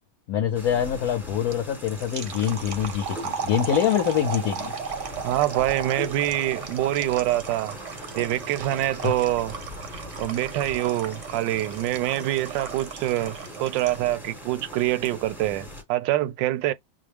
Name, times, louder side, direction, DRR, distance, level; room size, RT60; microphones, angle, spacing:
voice 1, 0.3-4.7 9.0-9.1, left 9 dB, 65° left, 1.0 m, -25 dB
sound 1, 0.5-15.8, equal, ahead, 0.8 m, -40 dB
sound 2, 1.5-14.1, right 6 dB, 60° right, 0.8 m, -36 dB
voice 2, 5.2-7.8 8.1-9.5 10.2-16.7, right 14 dB, 75° right, 1.2 m, -25 dB
6.1 x 2.1 x 3.3 m
omnidirectional pair, 2.1 m